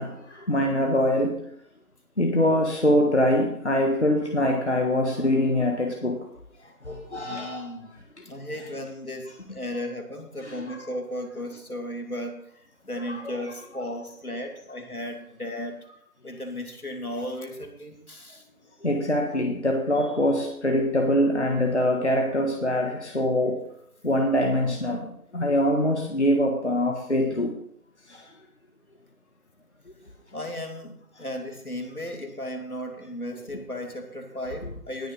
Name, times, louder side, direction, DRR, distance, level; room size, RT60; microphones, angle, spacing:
voice 1, 0.0-1.4 2.2-6.2 6.8-7.7 8.2-8.3 10.4-10.8 13.0-13.3 18.8-23.6 24.0-25.1 25.3-27.6 28.1-28.2 34.6-34.7, left 1 dB, 50° left, 1 dB, 1.5 m, -24 dB
voice 2, 7.2-7.9 8.2-12.5 12.8-15.8 16.2-18.4 30.3-35.1, left 1 dB, 75° left, 3 dB, 2.7 m, -35 dB
19.0 x 6.7 x 3.9 m, 0.68 s
figure-of-eight pair, 170°, 44 cm